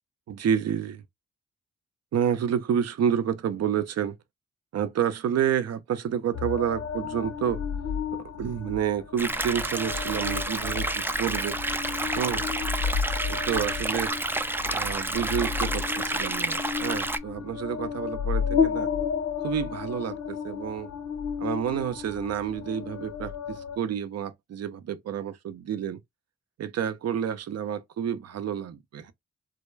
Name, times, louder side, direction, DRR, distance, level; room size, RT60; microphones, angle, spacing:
voice 1, 0.3-1.0 2.1-4.2 4.7-7.6 8.3-11.6 12.1-12.5 13.3-14.1 14.7-18.9 19.4-20.9 21.4-26.0 26.6-29.1, right 8 dB, 60° right, 0.6 m, -29 dB
sound 1, 6.3-23.8, left 6 dB, 65° left, 0.8 m, -32 dB
sound 2, 9.2-17.2, right 2 dB, 10° right, 0.3 m, -30 dB
2.3 x 2.0 x 3.1 m
supercardioid pair, 50°, 29 cm